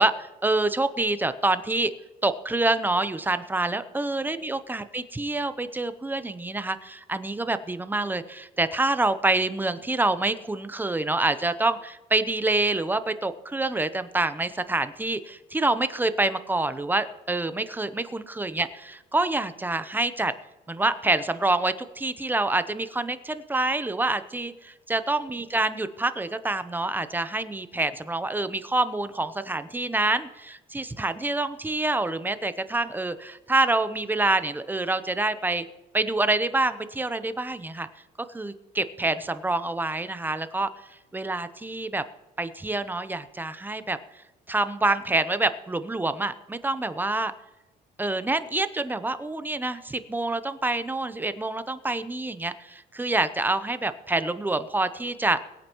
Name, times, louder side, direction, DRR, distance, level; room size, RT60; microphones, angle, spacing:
voice 1, 0.0-1.9 2.2-20.3 20.7-35.6 35.9-37.9 38.3-40.7 41.1-42.0 42.4-44.0 44.5-47.3 48.0-55.4, right 2 dB, 10° right, 12 dB, 0.7 m, -26 dB
22.5 x 8.8 x 3.1 m, 1.1 s
cardioid pair, 110°, 17 cm